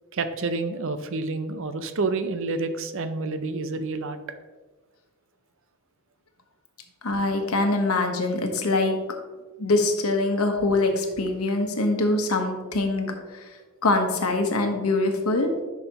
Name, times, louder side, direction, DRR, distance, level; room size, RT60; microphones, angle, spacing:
voice 1, 0.1-4.2, right 3 dB, 65° right, 10 dB, 0.6 m, -28 dB
voice 2, 7.0-9.0 9.6-15.5, left 2 dB, 85° left, 4 dB, 1.2 m, -24 dB
10.5 x 5.9 x 2.9 m, 1.2 s
head